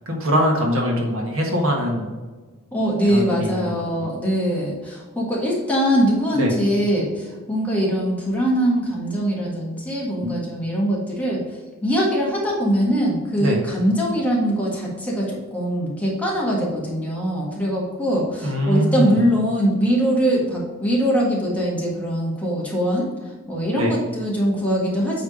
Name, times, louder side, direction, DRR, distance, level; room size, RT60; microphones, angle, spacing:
voice 1, 0.0-2.1 3.1-3.7 4.0-4.1 6.3-6.5 10.2-10.4 13.4-13.6 18.4-19.2 23.7-23.9, equal, 70° right, 0 dB, 1.6 m, -22 dB
voice 2, 2.7-11.4 11.8-25.2, equal, 5° left, -5 dB, 1.6 m, -22 dB
8.5 x 3.5 x 5.0 m, 1.3 s
head